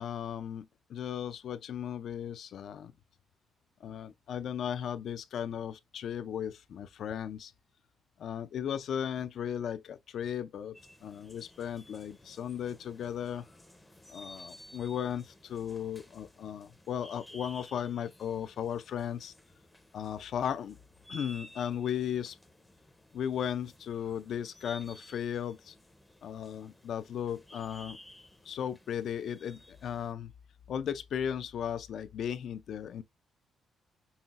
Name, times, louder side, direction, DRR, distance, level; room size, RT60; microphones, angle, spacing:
voice 1, 0.0-2.9 3.8-7.5 8.2-13.4 14.1-19.3 19.9-20.8 21.1-22.4 23.1-25.7 26.2-28.0 28.4-30.3 30.7-33.0, left 9 dB, 60° left, 0.3 m, -36 dB
sound 1, 10.7-30.1, left 1 dB, 10° left, 0.5 m, -55 dB
5.5 x 2.1 x 2.4 m
cardioid pair, 145°, 0 cm